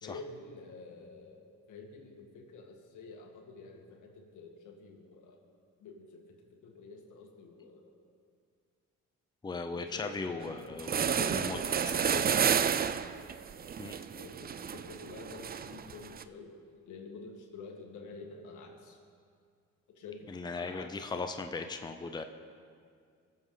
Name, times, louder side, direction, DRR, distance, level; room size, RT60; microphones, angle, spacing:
voice 1, 0.0-5.4 5.8-6.2 6.6-8.0 9.7-10.6 10.9-12.8 13.8-16.5 16.9-19.0 19.9-20.9, left 4 dB, 80° left, 1 dB, 2.0 m, -48 dB
voice 2, 9.4-11.6 11.8-11.9 13.8-14.0 20.3-22.2, left 4 dB, 15° left, 7 dB, 0.6 m, -38 dB
sound 1, 10.4-10.5 10.8-16.2, right 7 dB, 30° right, 0.4 m, -31 dB
22.0 x 7.3 x 4.0 m, 2.2 s
cardioid pair, 90°, 30 cm